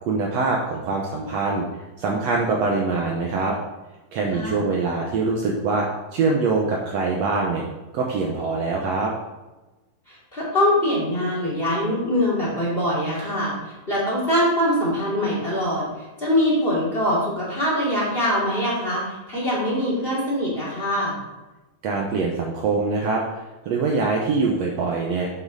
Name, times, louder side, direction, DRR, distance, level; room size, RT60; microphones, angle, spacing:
voice 1, 0.0-1.7 2.0-3.5 4.1-7.6 7.9-9.1 21.8-23.2 23.6-25.3, right 4 dB, 85° right, -1 dB, 1.4 m, -23 dB
voice 2, 4.3-4.7 10.1-15.9 16.2-21.1, equal, 15° left, -6 dB, 2.6 m, -23 dB
8.4 x 7.4 x 4.1 m, 1.1 s
omnidirectional pair, 4.2 m